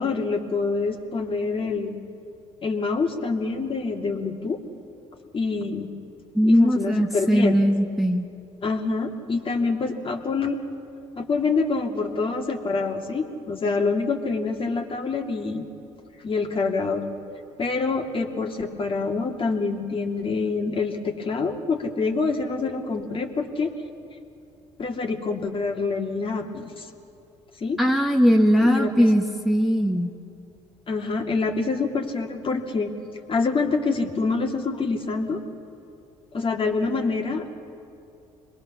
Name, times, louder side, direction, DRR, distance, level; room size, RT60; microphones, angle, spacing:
voice 1, 0.0-1.9 2.6-4.6 5.3-5.9 6.4-7.6 8.6-10.6 11.2-15.7 16.2-17.0 17.6-23.7 24.8-26.9 27.6-27.8 28.6-29.1 30.9-32.9 33.3-35.4 36.3-37.5, left 4 dB, 35° left, 2 dB, 2.4 m, -26 dB
voice 2, 6.3-8.3 27.8-30.1, equal, ahead, 1 dB, 1.6 m, -20 dB
26.0 x 21.5 x 7.2 m, 2.6 s
hypercardioid pair, 55°, 15 cm